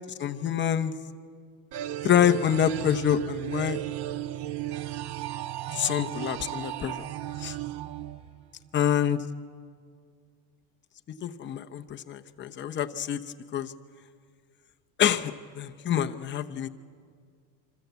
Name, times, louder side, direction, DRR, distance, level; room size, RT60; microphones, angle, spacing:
voice 1, 0.2-0.9 2.0-3.8 5.7-7.0 7.4-7.6 8.7-9.2 11.2-13.7 15.0-16.7, left 9 dB, 25° left, 7 dB, 0.7 m, -26 dB
sound 1, 1.7-8.7, right 13 dB, 55° right, 1.1 m, -35 dB
26.5 x 25.0 x 8.1 m, 2.1 s
cardioid pair, 160°, 49 cm